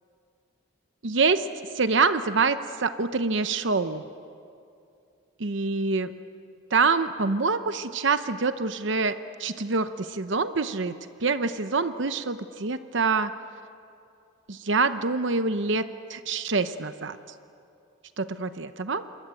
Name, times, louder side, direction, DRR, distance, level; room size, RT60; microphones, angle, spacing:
voice 1, 1.0-1.5 1.7-4.0 5.4-6.1 6.7-10.9 11.2-13.3 14.5-15.8 16.1-17.2 18.2-19.0, right 4 dB, 70° right, 10 dB, 0.8 m, -25 dB
27.5 x 22.5 x 9.3 m, 2.5 s
head